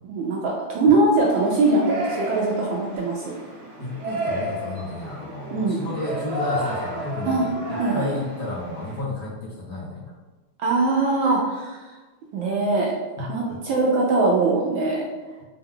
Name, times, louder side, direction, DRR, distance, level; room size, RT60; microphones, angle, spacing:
voice 1, 0.1-3.4 5.5-5.8 7.2-7.4 7.8-8.1 10.6-11.9 12.3-15.0, right 3 dB, 75° right, -2 dB, 1.2 m, -22 dB
Yell, 1.3-9.0, right 1 dB, 40° right, 1.1 m, -32 dB
voice 2, 3.8-10.0 13.2-13.6, left 2 dB, 55° left, -7 dB, 1.2 m, -32 dB
4.5 x 2.3 x 3.5 m, 1.2 s
omnidirectional pair, 2.4 m